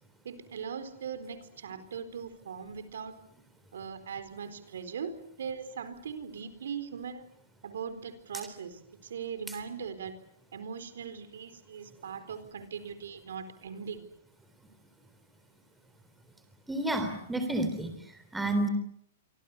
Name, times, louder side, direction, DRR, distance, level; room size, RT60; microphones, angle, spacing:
voice 1, 0.2-3.1 3.7-7.3 7.6-10.1 10.5-14.1, right 6 dB, 80° right, 11 dB, 4.2 m, -40 dB
voice 2, 16.7-18.0 18.3-18.7, right 1 dB, 5° right, 8 dB, 3.5 m, -30 dB
27.5 x 25.0 x 6.9 m, 0.68 s
hypercardioid pair, 160°, 0 cm